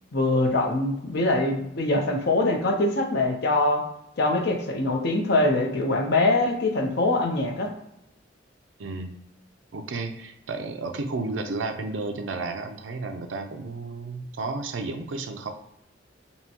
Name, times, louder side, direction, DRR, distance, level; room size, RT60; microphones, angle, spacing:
voice 1, 0.1-3.8 4.2-7.7, left 2 dB, 60° left, 3 dB, 0.7 m, -23 dB
voice 2, 8.8-9.2 9.7-15.5, right 3 dB, 70° right, 5 dB, 0.5 m, -32 dB
5.4 x 2.2 x 2.9 m, 0.82 s
head